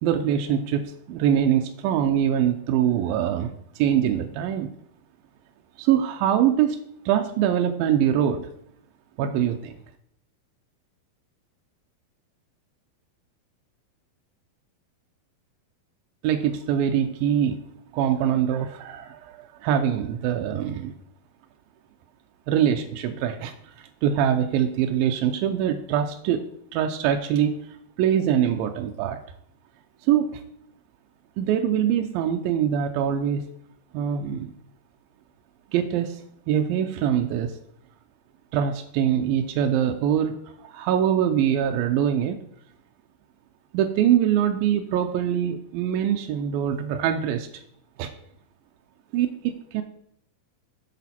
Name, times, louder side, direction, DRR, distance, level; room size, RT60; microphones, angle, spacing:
voice 1, 0.0-4.7 5.8-6.8 7.1-8.5 9.2-9.7 16.2-17.6 17.9-20.9 22.5-26.4 26.7-27.6 28.0-29.2 30.1-30.4 31.4-33.5 33.9-34.5 35.7-36.2 36.5-37.5 38.5-42.4 43.7-47.5 48.0-48.1 49.1-49.8, right 9 dB, 80° right, 5 dB, 2.3 m, -23 dB
8.2 x 6.9 x 4.2 m, 0.69 s
omnidirectional pair, 4.1 m